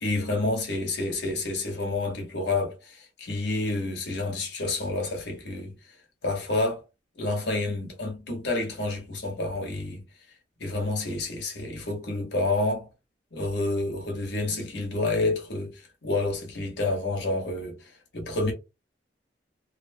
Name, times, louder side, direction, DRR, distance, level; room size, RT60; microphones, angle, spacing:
voice 1, 0.0-5.8 6.2-6.8 7.2-10.0 10.6-12.9 13.3-18.5, left 2 dB, 70° left, 1.1 m, -29 dB
2.8 x 2.2 x 2.6 m
head